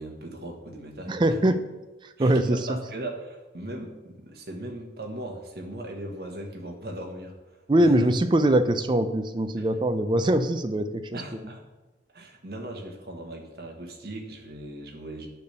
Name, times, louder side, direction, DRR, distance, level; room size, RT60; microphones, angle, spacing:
voice 1, 0.0-1.4 2.2-8.1 9.6-9.7 11.1-11.6 12.1-15.3, right 1 dB, 55° right, 2 dB, 1.3 m, -39 dB
voice 2, 1.1-1.6 2.0-2.6 7.7-11.2, right 1 dB, 25° right, 9 dB, 0.4 m, -22 dB
9.3 x 3.4 x 6.7 m, 1.1 s
head